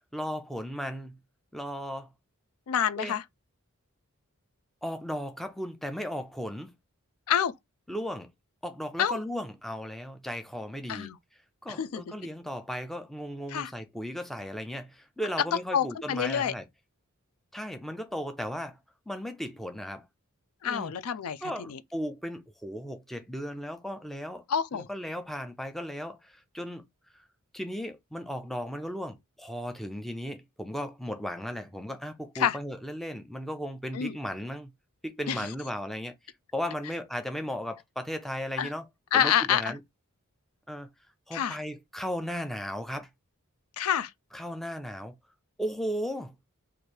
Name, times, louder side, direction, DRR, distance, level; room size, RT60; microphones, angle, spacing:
voice 1, 0.1-1.2 1.5-2.1 3.0-3.2 4.8-6.7 7.9-8.3 8.6-11.1 11.6-16.7 17.5-18.8 19.1-20.1 20.6-20.9 21.4-24.4 24.7-26.9 27.1-27.2 27.5-34.7 35.0-36.1 36.5-38.9 39.1-39.8 40.7-40.9 41.3-43.1 44.3-45.2 45.6-46.4, equal, ahead, 0.4 m, -36 dB
voice 2, 2.7-3.2 7.3-7.5 9.0-9.2 10.9-11.2 11.8-12.0 13.5-13.7 15.7-16.5 20.6-21.4 21.7-21.8 24.5-24.9 32.4-32.6 33.9-34.1 35.3-35.4 38.6-38.7 39.1-39.7 41.3-41.6 43.8-44.1, left 9 dB, 75° left, 0.4 m, -27 dB
3.2 x 2.5 x 4.4 m
head